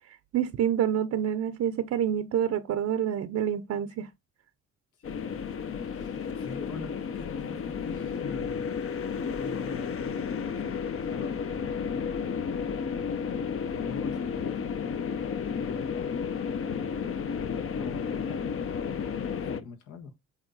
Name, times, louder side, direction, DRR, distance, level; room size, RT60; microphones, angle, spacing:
voice 1, 0.3-4.1, right 9 dB, 60° right, 0.7 m, -27 dB
voice 2, 4.9-8.9 9.4-11.9 13.7-15.1 15.5-16.1 16.6-17.1 17.4-18.4 18.8-19.2 19.5-20.1, left 4 dB, 80° left, 1.5 m, -46 dB
sound 1, 5.0-19.6, left 6 dB, 45° left, 0.8 m, -32 dB
8.1 x 3.0 x 3.9 m
cardioid pair, 90°, 30 cm